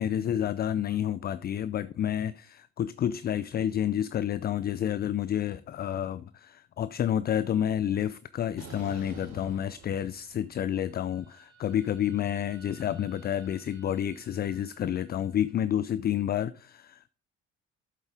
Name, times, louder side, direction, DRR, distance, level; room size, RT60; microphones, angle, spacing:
voice 1, 0.0-17.1, left 10 dB, 30° left, 0.4 m, -29 dB
sound 1, 8.6-10.5 10.9-15.2, right 4 dB, 50° right, 4.4 m, -52 dB
7.9 x 7.3 x 3.6 m
hypercardioid pair, 55°, 34 cm